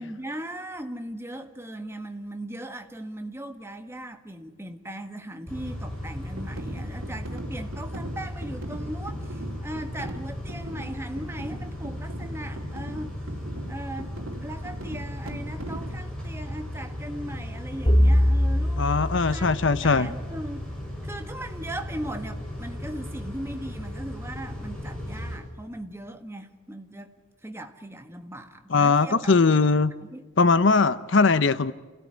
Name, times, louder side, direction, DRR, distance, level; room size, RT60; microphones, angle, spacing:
voice 1, 0.0-13.2 13.7-14.1 14.4-20.7 21.0-27.1 27.4-29.4 30.0-30.2, right 1 dB, 10° right, 1.6 m, -38 dB
Car / Idling / Accelerating revving vroom, 5.5-25.4, left 1 dB, 5° left, 6.4 m, -36 dB
sound 1, 6.4-16.0, right 1 dB, 85° right, 2.8 m, -40 dB
sound 2, 17.9-20.3, equal, 30° left, 2.1 m, -22 dB
voice 2, 18.8-20.1 28.7-29.9 30.4-31.7, left 4 dB, 60° left, 0.7 m, -20 dB
28.0 x 17.0 x 9.8 m
head